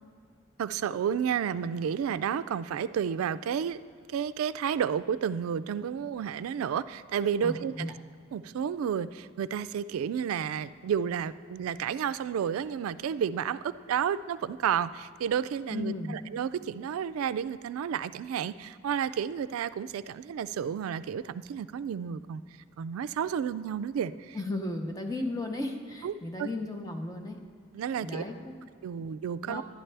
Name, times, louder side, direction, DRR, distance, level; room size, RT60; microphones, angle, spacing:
voice 1, 0.6-3.8 4.1-7.9 8.3-22.4 22.8-24.4 26.0-26.1 26.4-26.5 27.7-28.2 28.8-29.6, right 8 dB, 90° right, 14 dB, 0.3 m, -31 dB
voice 2, 7.4-7.9 15.7-16.2 24.3-27.4 28.0-28.6 29.0-29.1 29.4-29.6, left 2 dB, 15° left, 3 dB, 0.7 m, -35 dB
11.5 x 10.5 x 3.3 m, 2.2 s
head